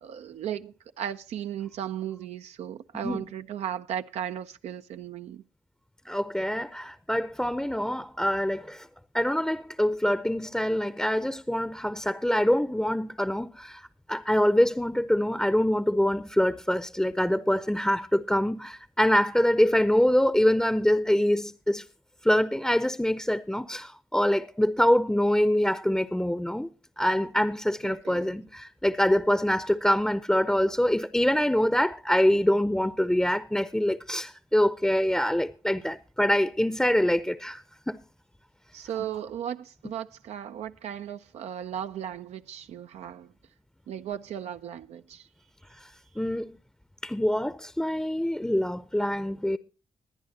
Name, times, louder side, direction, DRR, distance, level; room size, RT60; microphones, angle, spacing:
voice 1, 0.0-5.4 27.8-28.5 38.7-43.3 43.9-45.3, right 10 dB, 75° right, 0.5 m, -36 dB
voice 2, 6.1-8.9 9.1-13.8 14.1-21.8 22.2-26.7 27.0-38.0 46.2-46.6 47.0-49.6, equal, 5° left, 0.6 m, -25 dB
21.0 x 10.0 x 2.8 m
supercardioid pair, 45°, 11 cm